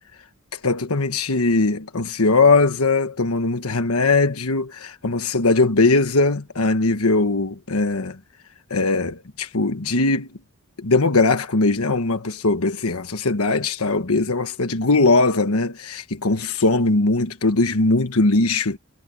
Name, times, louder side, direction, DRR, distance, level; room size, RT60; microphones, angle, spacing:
voice 1, 0.5-8.2 8.7-10.3 10.8-18.8, left 3 dB, 80° left, 1.4 m, -20 dB
head